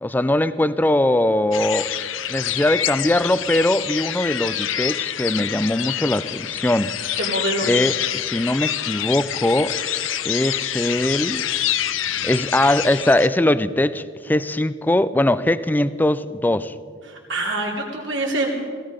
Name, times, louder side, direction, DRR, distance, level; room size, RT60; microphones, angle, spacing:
voice 1, 0.0-1.9 2.3-6.9 7.6-9.8 10.2-11.4 12.2-16.7, left 1 dB, 10° left, 15 dB, 0.4 m, -21 dB
sound 1, 1.5-13.3, left 11 dB, 75° left, 0.6 m, -26 dB
voice 2, 7.2-7.8 17.0-18.5, right 2 dB, 70° right, -1 dB, 3.0 m, -25 dB
17.0 x 16.5 x 5.1 m, 2.2 s
head